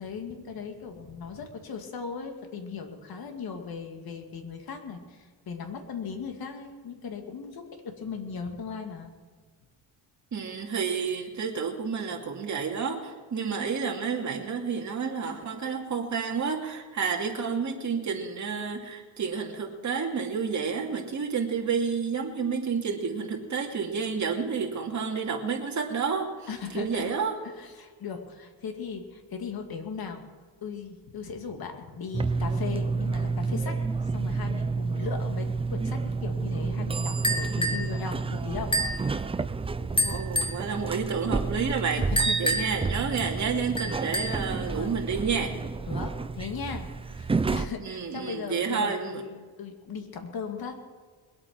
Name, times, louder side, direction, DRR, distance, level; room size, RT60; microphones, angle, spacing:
voice 1, 0.0-9.1 26.5-27.1 27.4-30.2 30.6-38.7 42.2-42.6 43.8-44.0 44.5-45.0 45.9-50.8, left 5 dB, 55° left, 4 dB, 2.3 m, -38 dB
voice 2, 10.3-26.3 26.7-27.3 39.8-42.0 42.4-45.5 47.4-49.2, right 5 dB, 40° right, 1 dB, 2.6 m, -30 dB
sound 1, 32.1-47.7, right 4 dB, 15° right, 0.4 m, -30 dB
sound 2, 37.2-37.9 38.7-39.0 40.0-40.6 42.2-42.9 43.8-44.5, equal, 10° left, 1.7 m, -28 dB
21.5 x 8.7 x 6.2 m, 1.5 s
cardioid pair, 125°, 43 cm